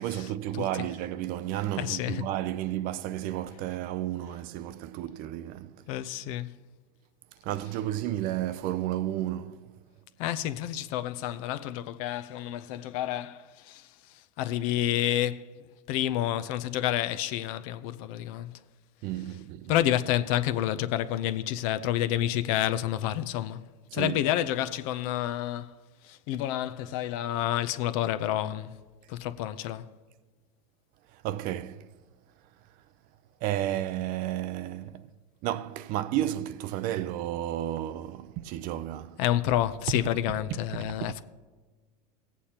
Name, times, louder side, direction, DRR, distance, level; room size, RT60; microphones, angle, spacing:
voice 1, 0.0-5.9 7.3-9.8 19.0-19.8 23.9-24.2 31.1-31.9 32.7-32.8 33.4-35.1 35.4-39.2 40.0-40.1 40.5-41.2, right 13 dB, 45° right, 0.4 m, -32 dB
voice 2, 1.8-2.2 5.9-6.5 10.2-13.9 14.4-15.5 15.9-18.5 19.7-23.6 23.9-25.8 26.0-28.7 29.1-29.8 39.2-41.2, left 12 dB, 60° left, 0.6 m, -29 dB
16.5 x 8.3 x 2.9 m
supercardioid pair, 120°, 20 cm